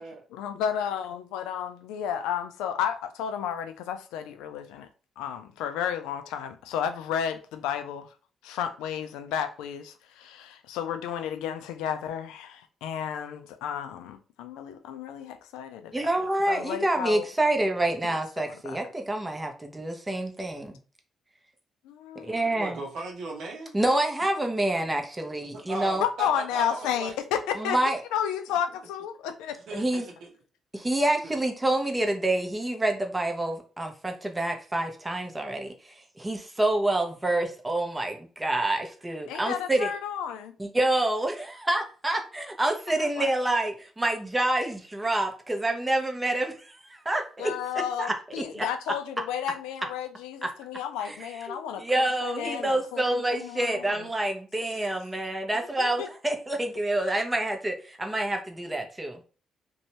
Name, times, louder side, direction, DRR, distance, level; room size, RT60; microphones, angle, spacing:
voice 1, 0.3-4.9 5.2-8.1 8.4-16.1 16.5-17.3 18.4-18.8 21.8-22.6 26.0-27.8 28.1-29.6 39.3-40.6 43.0-43.3 47.4-51.8 52.2-54.1 55.8-56.1, left 9 dB, 85° left, 0.3 m, -32 dB
voice 2, 15.9-20.8 22.2-22.8 23.7-26.0 27.6-28.0 29.7-30.0 30.7-35.7 36.2-39.9 40.6-47.5 48.0-48.1 48.5-48.6 50.4-50.5 51.0-59.2, right 1 dB, 20° right, 0.8 m, -27 dB
voice 3, 22.5-23.7 25.4-27.8 29.5-30.3 30.8-30.9 31.2-31.4, right 3 dB, 75° right, 0.6 m, -38 dB
2.6 x 2.2 x 3.0 m
supercardioid pair, 55°, 0 cm